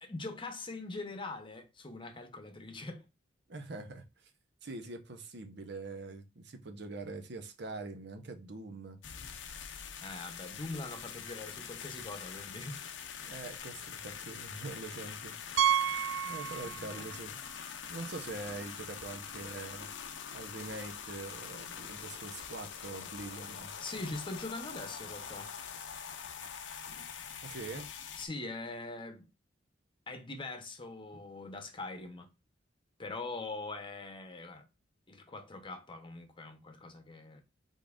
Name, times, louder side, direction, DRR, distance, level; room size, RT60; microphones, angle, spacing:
voice 1, 0.0-3.0 10.0-12.8 16.6-17.1 23.8-25.5 28.2-29.3 30.1-32.3 33.0-34.6 35.1-37.4, left 2 dB, 25° left, 0.9 m, -42 dB
voice 2, 3.5-4.3 4.6-9.0 13.2-15.7 16.2-17.4 17.9-19.9 20.3-23.7 27.4-27.9 31.1-31.2, right 3 dB, 65° right, 0.9 m, -44 dB
sound 1, 9.0-28.3, left 7 dB, 75° left, 0.7 m, -44 dB
Piano, 15.6-17.2 17.4-17.6 18.2-18.3 18.5-18.6 20.7-20.8, right 9 dB, 90° right, 0.3 m, -31 dB
5.3 x 3.8 x 2.5 m
head